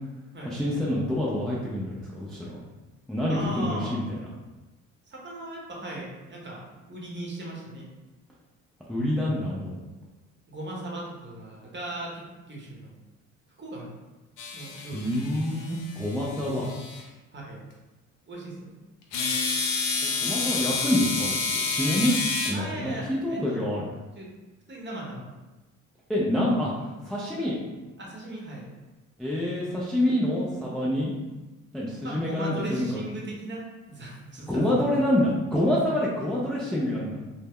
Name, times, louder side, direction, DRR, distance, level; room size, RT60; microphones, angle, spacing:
voice 1, 0.4-2.6 3.1-4.2 8.9-9.8 14.9-16.7 20.0-21.4 21.7-22.1 22.4-23.9 26.1-26.7 27.0-27.6 29.2-31.1 31.7-33.0 34.5-37.2, left 1 dB, ahead, -6 dB, 0.5 m, -27 dB
voice 2, 3.3-4.0 5.1-7.9 10.5-12.9 13.6-13.9 14.5-15.1 17.3-17.7 18.3-18.7 22.5-23.7 24.2-24.3 24.7-25.3 28.0-28.7 32.0-34.9, right 1 dB, 30° right, -3 dB, 0.9 m, -38 dB
sound 1, 14.4-17.0 19.1-22.5, left 4 dB, 85° left, 0.6 m, -29 dB
2.1 x 2.0 x 3.5 m, 1.1 s
hypercardioid pair, 60°, 39 cm